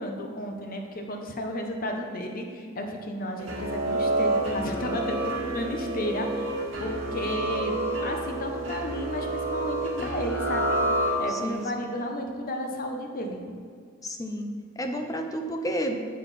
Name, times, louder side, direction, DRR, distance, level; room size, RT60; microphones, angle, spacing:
voice 1, 0.0-7.7 8.0-10.8 11.2-13.4, equal, 45° left, 3 dB, 0.9 m, -33 dB
sound 1, 3.4-11.6, right 1 dB, 65° right, 1.7 m, -29 dB
voice 2, 11.3-11.9 14.0-14.5 14.8-16.0, equal, 15° left, 5 dB, 0.6 m, -31 dB
7.5 x 7.1 x 4.2 m, 2.1 s
head